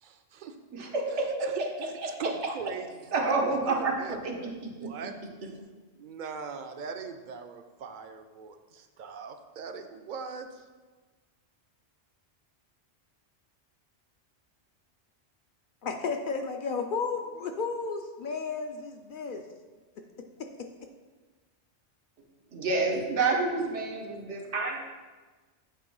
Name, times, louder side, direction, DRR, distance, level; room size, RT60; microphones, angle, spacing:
voice 1, 0.0-0.5 1.4-1.9 2.2-5.1 5.4-5.6 6.0-10.6, right 5 dB, 55° right, 7 dB, 0.6 m, -41 dB
voice 2, 0.7-1.3 3.1-3.9 4.2-4.3 4.8-4.9 22.5-24.8, right 3 dB, 90° right, 0 dB, 1.4 m, -28 dB
voice 3, 15.8-19.4 20.0-20.1 20.4-20.5, left 4 dB, 60° left, 4 dB, 0.6 m, -33 dB
8.4 x 3.0 x 5.4 m, 1.3 s
omnidirectional pair, 1.2 m